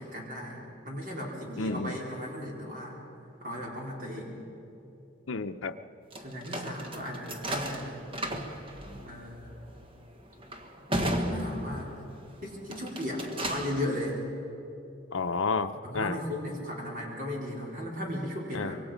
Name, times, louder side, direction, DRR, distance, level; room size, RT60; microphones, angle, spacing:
voice 1, 0.0-2.9 3.4-4.4 6.2-8.0 9.0-9.7 11.0-11.9 12.4-14.2 15.8-18.8, left 1 dB, 40° right, -3 dB, 4.6 m, -36 dB
voice 2, 1.6-2.0 5.3-5.8 15.1-16.2 18.5-18.7, left 4 dB, 75° left, 8 dB, 0.8 m, -31 dB
sound 1, 6.1-12.2 12.6-13.8, equal, 25° right, 1.4 m, -35 dB
25.5 x 22.5 x 5.2 m, 2.8 s
head